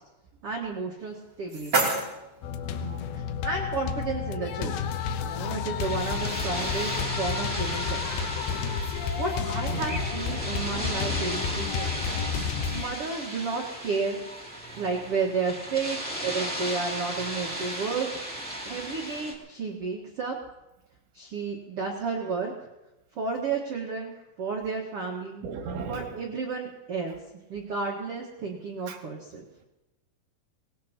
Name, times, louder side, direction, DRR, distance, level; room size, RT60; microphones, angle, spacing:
voice 1, 0.4-1.9 3.1-5.0 5.2-6.9 7.2-8.3 9.2-12.1 12.7-14.2 14.8-20.3 21.1-22.5 23.1-25.4 25.9-27.1 27.5-29.4, right 4 dB, 70° right, 1.4 m, -32 dB
sound 1, 1.0-3.0, right 3 dB, 25° right, 2.9 m, -30 dB
sound 2, 2.4-12.8, left 6 dB, 80° left, 2.4 m, -31 dB
voice 2, 2.7-3.1 9.7-9.8 25.4-26.2 28.9-29.0, right 5 dB, 90° right, 4.0 m, -36 dB
sound 3, 5.8-19.3, equal, 5° left, 1.0 m, -35 dB
23.0 x 18.5 x 2.9 m
omnidirectional pair, 5.1 m